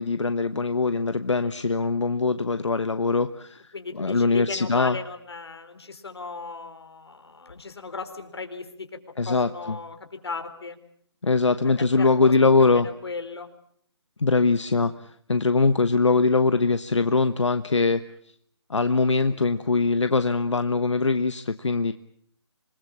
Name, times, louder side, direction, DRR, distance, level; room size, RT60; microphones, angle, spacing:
voice 1, 0.0-3.6 3.9-5.0 9.2-9.8 11.2-12.9 14.2-18.0 18.7-21.9, left 3 dB, 85° left, 11 dB, 1.1 m, -22 dB
voice 2, 3.7-8.9 9.3-10.0 10.2-10.8 11.8-13.5, left 4 dB, 60° left, 7 dB, 4.1 m, -36 dB
27.0 x 20.0 x 8.7 m, 0.66 s
figure-of-eight pair, 160°, 15 cm